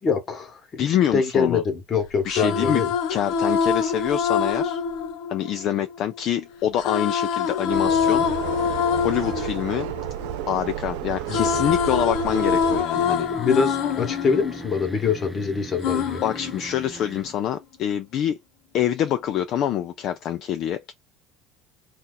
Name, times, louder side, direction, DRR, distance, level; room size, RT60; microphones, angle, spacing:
voice 1, 0.0-2.9 11.3-11.6 13.4-16.2, left 5 dB, 30° left, 1.1 m, -24 dB
voice 2, 0.8-1.6 2.2-2.8 3.1-4.8 5.3-8.3 9.0-9.9 10.5-13.3 16.2-18.4 18.7-20.9, left 10 dB, 50° left, 0.3 m, -25 dB
sound 1, 2.1-6.2 6.8-10.8 11.1-15.3 15.8-17.3, left 6 dB, 70° left, 0.7 m, -25 dB
sound 2, 7.7-12.9, right 12 dB, 80° right, 0.4 m, -32 dB
sound 3, 12.9-17.5, right 1 dB, 5° right, 0.5 m, -40 dB
2.8 x 2.4 x 3.7 m
cardioid pair, 130°, 0 cm